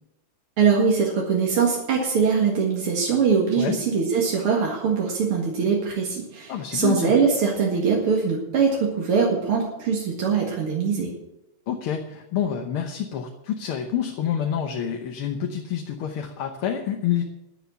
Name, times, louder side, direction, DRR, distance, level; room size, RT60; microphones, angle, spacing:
voice 1, 0.6-11.1, right 5 dB, 85° right, -2 dB, 2.8 m, -22 dB
voice 2, 6.5-7.1 11.7-17.2, left 9 dB, 80° left, 4 dB, 1.9 m, -28 dB
11.5 x 10.5 x 7.0 m, 0.88 s
omnidirectional pair, 2.3 m